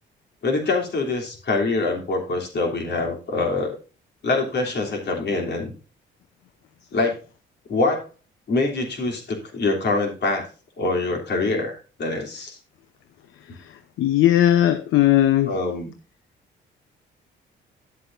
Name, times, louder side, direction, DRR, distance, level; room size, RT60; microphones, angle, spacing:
voice 1, 0.4-3.8 4.2-5.7 6.9-7.2 7.7-8.0 8.5-10.4 10.8-12.6 13.5-13.6 15.5-15.9, left 3 dB, 60° left, 2 dB, 3.2 m, -24 dB
voice 2, 14.0-15.5, left 12 dB, 85° left, 11 dB, 0.8 m, -17 dB
12.0 x 7.8 x 2.6 m, 0.34 s
cardioid pair, 90°, 20 cm